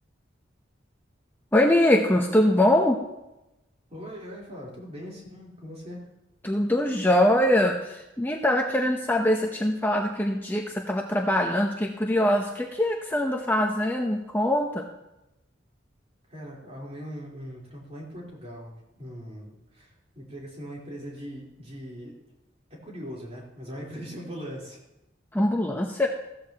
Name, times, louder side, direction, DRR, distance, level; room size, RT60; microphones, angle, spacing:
voice 1, 1.5-3.0 6.4-14.9 25.3-26.1, left 1 dB, 10° left, 1 dB, 0.7 m, -23 dB
voice 2, 3.9-6.0 16.3-18.7 19.0-22.1 22.7-24.8, equal, 35° right, -4 dB, 3.8 m, -40 dB
15.5 x 13.5 x 2.9 m, 0.92 s
head